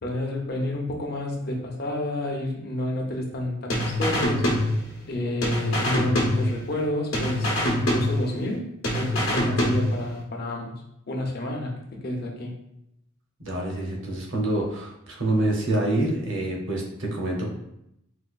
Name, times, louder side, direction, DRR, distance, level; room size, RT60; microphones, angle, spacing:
voice 1, 0.0-4.5 5.1-8.7 8.9-10.7 11.1-11.7 12.0-12.5, left 1 dB, 50° left, 0 dB, 0.6 m, -30 dB
sound 1, 3.7-5.1 5.4-6.9 7.1-8.6 8.8-10.2, left 1 dB, 80° left, 0.9 m, -25 dB
voice 2, 13.4-17.5, right 1 dB, 65° right, 0 dB, 0.7 m, -26 dB
4.2 x 2.2 x 2.4 m, 0.80 s
head